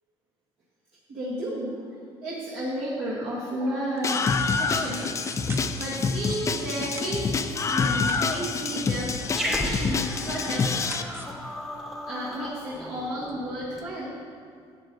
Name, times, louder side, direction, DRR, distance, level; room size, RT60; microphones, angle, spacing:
voice 1, 1.1-1.8 2.2-10.8 12.1-14.2, right 1 dB, 65° right, -8 dB, 2.1 m, -33 dB
Screaming, 4.0-11.0, left 5 dB, 25° left, 0.4 m, -27 dB
sound 1, 4.0-11.3, right 2 dB, 20° right, 0.8 m, -44 dB
Growling, 9.3-13.9, left 1 dB, ahead, 1.0 m, -34 dB
12.0 x 8.0 x 4.0 m, 2.2 s
cardioid pair, 125°, 11 cm